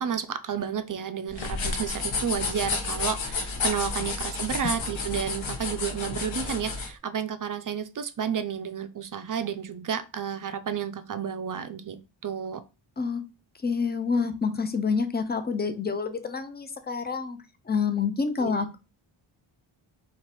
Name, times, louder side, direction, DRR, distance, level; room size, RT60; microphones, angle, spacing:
voice 1, 0.0-12.6 18.4-18.7, right 7 dB, 45° right, 0.4 m, -31 dB
sound 1, 1.3-6.9, left 4 dB, 70° left, 1.0 m, -31 dB
voice 2, 13.6-17.4 17.7-18.8, left 5 dB, 20° left, 0.5 m, -27 dB
4.6 x 2.6 x 4.1 m
wide cardioid pair, 130°, 48 cm